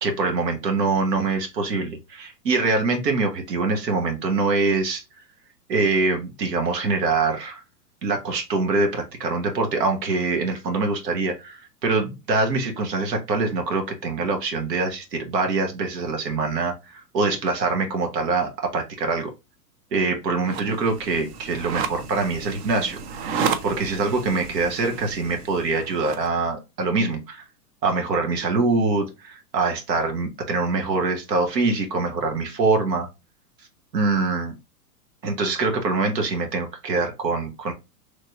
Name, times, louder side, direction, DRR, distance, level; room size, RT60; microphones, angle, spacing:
voice 1, 0.0-5.0 5.7-7.6 8.0-19.3 19.9-27.4 27.8-33.1 33.9-34.5 35.2-37.7, right 3 dB, 80° right, 1.2 m, -24 dB
sound 1, 20.4-26.3, right 6 dB, 40° right, 0.5 m, -32 dB
3.2 x 2.7 x 2.9 m
hypercardioid pair, 125°, 49 cm